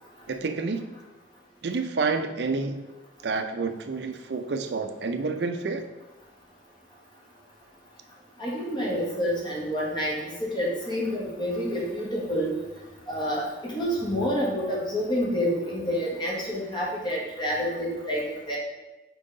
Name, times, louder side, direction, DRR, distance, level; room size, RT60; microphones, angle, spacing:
voice 1, 0.3-0.9 1.6-2.8 3.2-5.9, right 4 dB, 75° right, 7 dB, 0.5 m, -29 dB
voice 2, 8.4-12.6 13.1-18.6, equal, 25° left, -4 dB, 1.4 m, -28 dB
5.4 x 4.6 x 3.9 m, 1.1 s
head